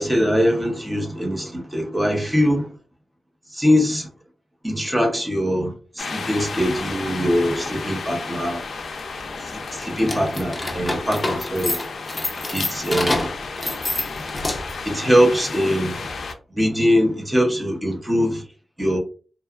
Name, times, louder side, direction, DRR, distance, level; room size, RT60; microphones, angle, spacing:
voice 1, 0.0-2.7 3.5-4.1 4.6-8.6 9.5-11.8 12.5-13.3 14.8-16.0 16.5-18.4 18.8-19.0, equal, 15° right, 0.7 m, -22 dB
sound 1, 6.0-16.3, left 4 dB, 65° left, 0.4 m, -32 dB
sound 2, 10.0-14.9, left 2 dB, 20° left, 0.6 m, -27 dB
2.8 x 2.3 x 2.3 m
wide cardioid pair, 145°, 0 cm